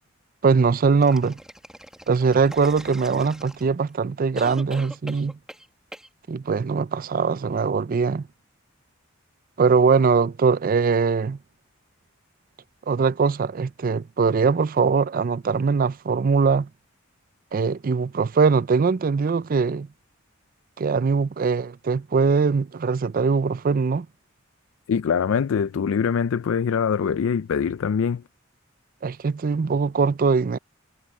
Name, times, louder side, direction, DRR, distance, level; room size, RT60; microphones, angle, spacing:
voice 1, 0.4-1.4 2.1-5.4 6.3-8.3 9.6-11.4 12.9-16.7 17.5-19.9 20.8-24.1 29.0-30.6, right 5 dB, 45° right, 0.4 m, -21 dB
sound 1, 1.0-3.9 4.4-5.7 5.9-6.1, equal, 5° right, 1.7 m, -41 dB
voice 2, 24.9-28.2, left 6 dB, 80° left, 0.4 m, -23 dB
head